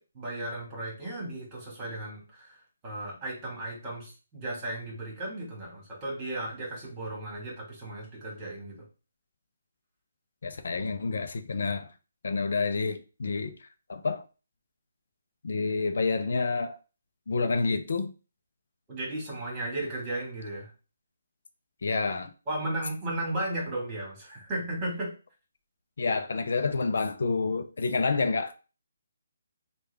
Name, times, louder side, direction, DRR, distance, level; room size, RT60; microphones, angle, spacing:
voice 1, 0.0-8.9 18.9-20.7 22.5-25.1, right 1 dB, 20° right, 1.7 m, -35 dB
voice 2, 10.4-11.9 12.2-13.6 13.9-14.2 15.4-16.8 17.3-18.1 21.8-22.3 26.0-28.5, left 4 dB, 65° left, 0.4 m, -28 dB
3.4 x 2.3 x 3.3 m
hypercardioid pair, 160°, 0 cm